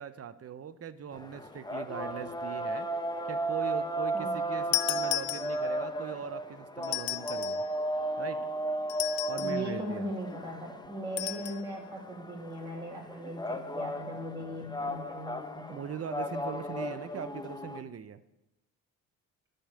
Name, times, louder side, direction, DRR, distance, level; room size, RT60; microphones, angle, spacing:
voice 1, 0.0-2.9 3.3-7.6 8.2-8.5 9.3-10.1 15.7-18.2, right 8 dB, 40° right, 13 dB, 0.8 m, -40 dB
sound 1, 1.1-17.8, right 1 dB, 10° left, 1.0 m, -35 dB
sound 2, 4.7-5.9 6.8-7.7 8.9-9.7 11.2-11.6, left 18 dB, 80° left, 0.6 m, -33 dB
voice 2, 9.4-15.8, right 1 dB, 10° right, -3 dB, 2.3 m, -39 dB
13.0 x 5.4 x 8.8 m, 0.90 s
supercardioid pair, 80°, 35 cm